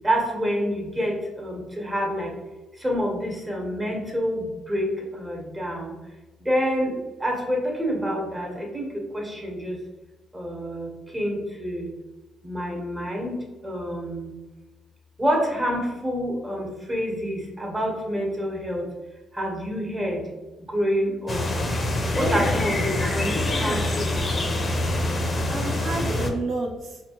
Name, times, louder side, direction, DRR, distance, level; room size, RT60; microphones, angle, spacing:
voice 1, 0.0-2.3 2.8-5.9 6.4-9.8 10.3-11.9 12.4-14.3 15.2-18.8 19.3-20.2 20.7-21.4 22.2-24.0, equal, 20° right, -1 dB, 1.2 m, -27 dB
sound 1, 21.3-26.3, left 1 dB, 35° left, 0.6 m, -25 dB
voice 2, 23.3-23.8 25.5-27.0, right 2 dB, 60° right, 1 dB, 0.8 m, -30 dB
4.2 x 2.4 x 2.9 m, 1.2 s
cardioid pair, 90°, 0 cm